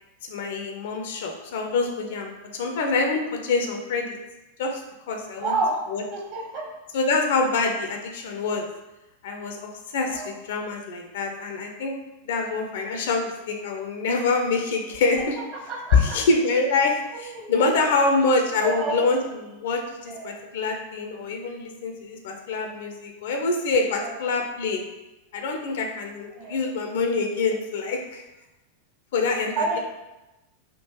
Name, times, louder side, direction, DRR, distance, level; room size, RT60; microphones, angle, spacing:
voice 1, 0.2-4.2 4.6-4.8 5.1-5.6 5.9-6.0 6.9-8.7 9.2-12.0 12.2-15.4 15.9-24.8 25.3-28.2 29.1-29.8, left 3 dB, 55° left, 3 dB, 0.5 m, -25 dB
voice 2, 5.4-5.8 6.1-6.6 10.1-10.3 15.5-16.2 17.2-17.9 18.5-19.1 20.0-20.4 24.0-24.1 26.3-26.6 29.6-29.8, right 3 dB, 40° right, -2 dB, 1.0 m, -29 dB
3.7 x 2.4 x 2.8 m, 0.98 s
figure-of-eight pair, 90°, 0 cm